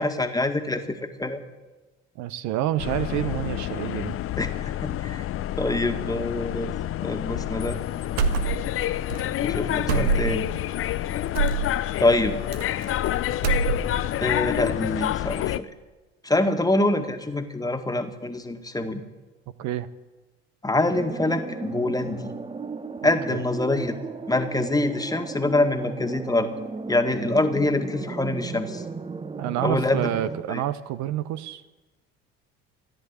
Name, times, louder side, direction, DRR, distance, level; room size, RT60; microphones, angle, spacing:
voice 1, 0.0-1.4 4.4-5.2 5.6-6.7 7.0-7.8 9.4-10.5 12.0-12.4 14.2-15.7 16.2-19.0 20.6-22.3 23.0-24.0 24.3-26.5 26.9-28.8 29.6-30.1 30.5-30.6, left 2 dB, 10° left, 6 dB, 1.8 m, -25 dB
voice 2, 2.2-4.2 19.6-19.9 23.0-23.4 29.4-31.6, right 12 dB, 60° right, 13 dB, 0.9 m, -28 dB
sound 1, 2.8-15.6, left 12 dB, 45° left, 0.7 m, -28 dB
sound 2, 8.2-8.8 9.1-9.2 9.9-10.5 11.3-11.7 12.5-13.1 13.3-14.1, right 4 dB, 80° right, 1.4 m, -24 dB
sound 3, 20.9-30.4, right 4 dB, 15° right, 0.9 m, -35 dB
14.0 x 11.0 x 8.4 m, 1.2 s
hypercardioid pair, 65°, 31 cm